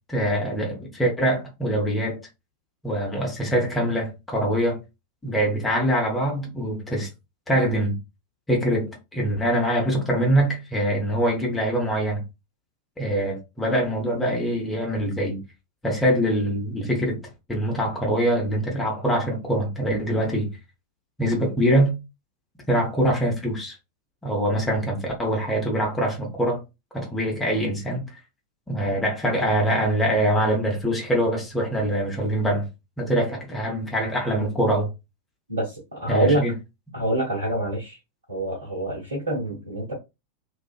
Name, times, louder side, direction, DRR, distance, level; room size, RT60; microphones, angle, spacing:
voice 1, 0.1-2.2 2.8-4.8 5.2-7.1 7.5-8.0 8.5-12.2 13.0-15.4 15.8-17.2 17.5-20.6 21.2-21.9 22.7-23.8 24.2-26.6 26.9-28.1 28.7-32.7 33.0-34.9 36.1-36.5, right 1 dB, 10° left, 0.8 m, -24 dB
voice 2, 35.5-36.4 36.9-38.0 38.3-39.9, right 1 dB, 75° right, 1.0 m, -26 dB
2.4 x 2.3 x 2.3 m
figure-of-eight pair, 90°, 0 cm